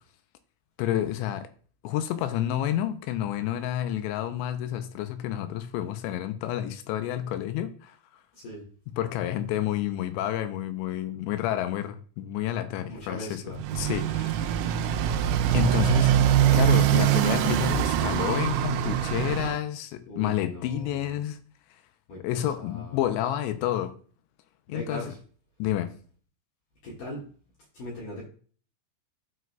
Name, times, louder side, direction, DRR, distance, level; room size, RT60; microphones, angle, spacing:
voice 1, 0.8-1.5 1.8-8.0 8.9-14.3 15.5-16.2 16.5-21.4 22.2-24.0 24.7-25.1 25.6-25.9, left 12 dB, 85° left, 2.9 m, -29 dB
voice 2, 8.3-8.6 12.9-13.6 20.1-21.1 22.1-23.0 24.7-25.2 26.8-27.2 27.7-28.2, left 1 dB, 60° left, 2.7 m, -39 dB
Motorcycle, 13.5-19.6, right 11 dB, 85° right, 2.9 m, -23 dB
12.0 x 4.8 x 2.2 m
omnidirectional pair, 5.2 m